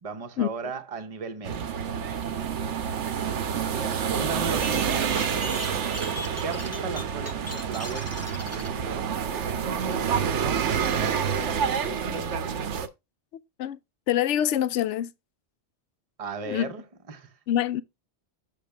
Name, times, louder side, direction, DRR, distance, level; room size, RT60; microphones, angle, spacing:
voice 1, 0.0-1.7 4.1-5.1 6.4-12.4 16.2-17.3, right 4 dB, 35° right, 0.9 m, -37 dB
sound 1, 1.4-12.9, right 7 dB, 85° right, 1.1 m, -28 dB
sound 2, 4.6-8.7, left 2 dB, 15° left, 0.6 m, -40 dB
voice 2, 14.1-15.1 16.5-16.7 17.5-17.8, left 11 dB, 80° left, 0.9 m, -25 dB
6.9 x 6.5 x 3.4 m
omnidirectional pair, 1.2 m